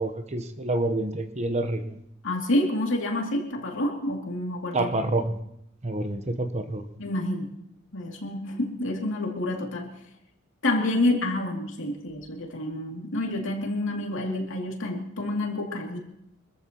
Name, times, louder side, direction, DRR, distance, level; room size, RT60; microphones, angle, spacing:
voice 1, 0.0-2.0 4.7-5.4 5.8-6.8, right 2 dB, 30° right, 8 dB, 1.0 m, -28 dB
voice 2, 2.2-4.9 7.0-7.5 7.9-9.9 10.6-16.0, left 1 dB, 65° left, 0 dB, 2.6 m, -28 dB
25.5 x 14.0 x 3.0 m, 0.76 s
head